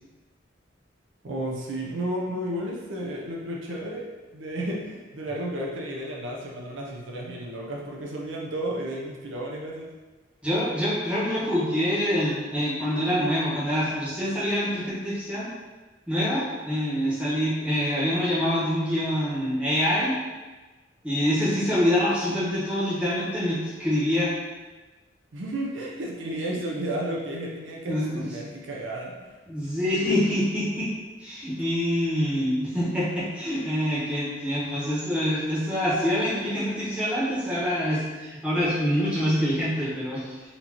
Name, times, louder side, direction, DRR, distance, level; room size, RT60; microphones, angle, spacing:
voice 1, 1.2-9.9 25.3-29.3, right 1 dB, 75° right, -2 dB, 0.6 m, -32 dB
voice 2, 10.4-15.5 16.1-20.1 21.0-24.3 27.9-28.2 29.5-30.9 31.2-40.2, equal, 5° right, -9 dB, 1.2 m, -25 dB
4.3 x 2.7 x 2.9 m, 1.3 s
head